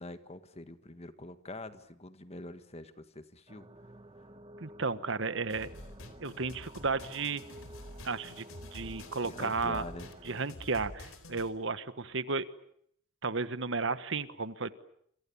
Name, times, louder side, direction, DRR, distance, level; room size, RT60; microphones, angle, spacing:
voice 1, 0.0-3.7 9.2-10.1, left 2 dB, 30° left, 10 dB, 1.7 m, -45 dB
sound 1, 3.5-10.4, right 1 dB, 25° right, 1.5 m, -52 dB
voice 2, 4.6-5.7 6.2-7.4 8.0-9.8 10.2-12.5 13.2-14.7, right 4 dB, 60° right, 13 dB, 1.4 m, -33 dB
sound 2, 5.5-11.5, left 1 dB, 85° left, 4.2 m, -48 dB
28.0 x 26.5 x 7.2 m, 0.68 s
head